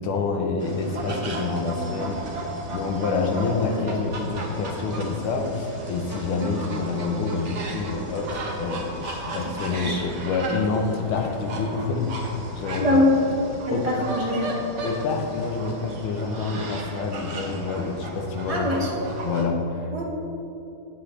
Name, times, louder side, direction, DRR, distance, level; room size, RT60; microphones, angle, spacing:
voice 1, 0.0-13.0 13.7-14.0 14.8-18.8 19.2-19.8, left 4 dB, 85° left, 4 dB, 1.6 m, -27 dB
sound 1, 0.6-19.4, right 2 dB, 45° right, 1.0 m, -35 dB
voice 2, 9.4-10.0 12.8-13.1 13.7-14.6 18.5-18.9 19.9-20.0, left 1 dB, 25° right, -4 dB, 0.8 m, -24 dB
8.7 x 7.7 x 3.2 m, 2.9 s
omnidirectional pair, 2.3 m